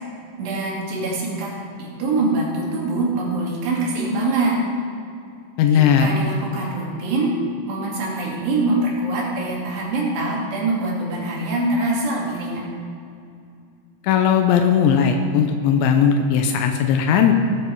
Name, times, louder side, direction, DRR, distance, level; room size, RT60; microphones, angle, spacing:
voice 1, 0.4-1.5 1.8-4.7 5.7-7.3 7.7-12.7, right 2 dB, 70° right, -3 dB, 4.4 m, -24 dB
voice 2, 5.6-6.1 14.0-17.3, left 7 dB, 85° left, 4 dB, 3.1 m, -17 dB
17.5 x 7.8 x 4.7 m, 2.5 s
omnidirectional pair, 5.2 m